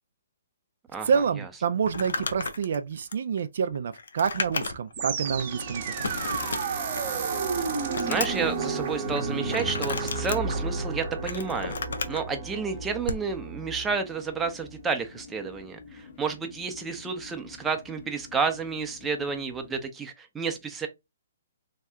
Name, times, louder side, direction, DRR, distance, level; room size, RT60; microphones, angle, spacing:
voice 1, 1.1-6.2, right 6 dB, 65° right, 0.3 m, -28 dB
Crumpling crinkling, 1.8-5.0 5.4-5.5 6.0-7.2 7.5-8.5 9.5-10.4 11.0-12.2 13.0-13.3, left 4 dB, 75° left, 0.5 m, -33 dB
sound 1, 4.9-14.1, right 4 dB, 50° right, 0.7 m, -32 dB
sound 2, 5.0-19.9, left 5 dB, 50° left, 0.8 m, -48 dB
voice 2, 8.0-11.8 12.1-20.9, right 5 dB, 10° right, 0.5 m, -31 dB
2.8 x 2.3 x 3.3 m
hypercardioid pair, 140°, 0 cm